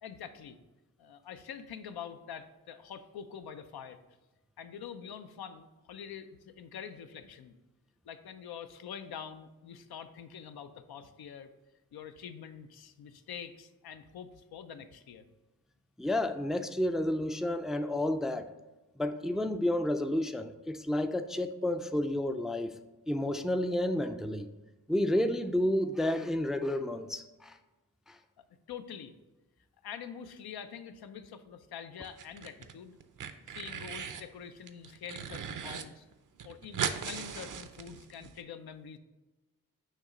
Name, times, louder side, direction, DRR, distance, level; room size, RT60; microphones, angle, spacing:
voice 1, 0.0-0.6 1.0-4.0 4.6-7.6 8.0-11.5 11.9-15.2 28.4-29.1 29.8-33.0 33.5-36.1 36.4-39.0, left 7 dB, 90° left, 9 dB, 0.5 m, -45 dB
voice 2, 16.0-18.5 19.0-22.7 23.1-24.5 24.9-27.6 28.1-28.2, left 1 dB, ahead, 9 dB, 0.3 m, -30 dB
sound 1, 32.0-32.7 33.0-34.3 34.7-35.8 36.1-36.2 36.4-38.3, right 7 dB, 60° right, 0.5 m, -38 dB
6.6 x 3.0 x 4.9 m, 1.1 s
cardioid pair, 60°, 36 cm